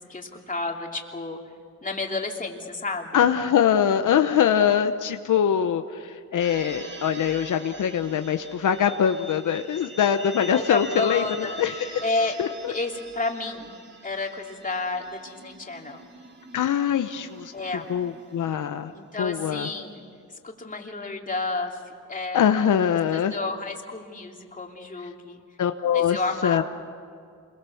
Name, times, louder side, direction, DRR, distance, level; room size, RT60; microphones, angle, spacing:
voice 1, 0.0-1.4 1.8-3.3 10.5-11.6 12.0-12.4 12.7-13.7 14.0-16.1 17.5-17.9 18.9-20.0 20.4-21.8 22.1-22.5 23.1-25.4 25.9-26.6, left 3 dB, 25° left, 1 dB, 2.8 m, -31 dB
voice 2, 3.1-12.0 12.4-12.7 16.5-17.5 17.9-18.9 19.2-19.7 22.3-23.3 25.6-26.2 26.4-26.6, left 8 dB, 80° left, 8 dB, 0.9 m, -23 dB
sound 1, 6.4-18.9, right 2 dB, 35° right, 2.2 m, -43 dB
27.5 x 22.0 x 7.0 m, 2.3 s
cardioid pair, 100°, 31 cm